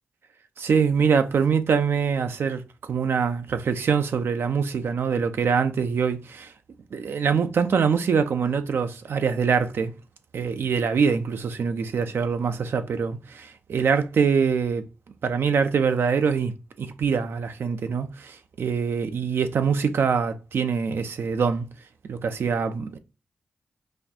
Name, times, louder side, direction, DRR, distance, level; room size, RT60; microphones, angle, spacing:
voice 1, 0.6-6.5 6.9-9.9 10.3-14.8 15.2-16.5 16.8-21.7 22.0-23.0, right 6 dB, 70° right, 0.4 m, -24 dB
4.1 x 2.4 x 2.6 m
supercardioid pair, 40°, 4 cm